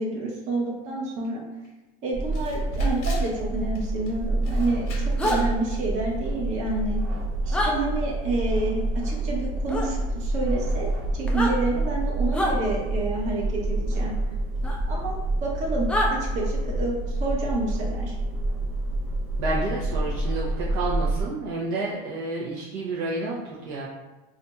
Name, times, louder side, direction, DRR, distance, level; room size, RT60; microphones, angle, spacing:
voice 1, 0.0-1.4 2.0-4.9 5.2-7.0 7.4-10.9 11.1-14.1 14.9-15.1 15.4-16.9 17.2-18.2, right 2 dB, 40° right, -3 dB, 0.9 m, -29 dB
Camera, 1.2-1.3 1.6-1.7 2.3-3.3 3.7-4.1 4.4-5.5, left 4 dB, 80° left, 0.8 m, -43 dB
sound 1, 2.1-21.2, right 1 dB, 80° right, 1.2 m, -27 dB
sound 2, 5.2-5.4 7.5-7.7 9.7-9.9 11.2-11.5 12.3-12.5 14.6-14.8 15.9-16.1, left 1 dB, 5° left, 0.3 m, -25 dB
voice 2, 19.4-23.4 23.7-23.8, right 2 dB, 60° right, -6 dB, 0.7 m, -30 dB
2.5 x 2.3 x 4.0 m, 1.1 s
supercardioid pair, 150°, 19 cm